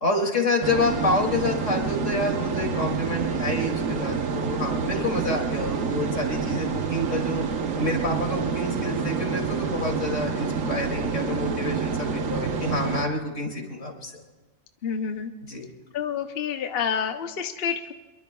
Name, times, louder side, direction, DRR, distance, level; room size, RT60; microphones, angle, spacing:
voice 1, 0.0-7.4 7.7-14.1 15.5-15.7, left 2 dB, 75° left, 1 dB, 2.9 m, -28 dB
sound 1, 0.6-13.0, right 5 dB, 85° right, 1.3 m, -28 dB
voice 2, 4.9-5.3 14.8-15.3 15.9-17.9, left 7 dB, 55° left, 7 dB, 0.9 m, -29 dB
26.0 x 22.5 x 2.3 m, 1.3 s
omnidirectional pair, 1.3 m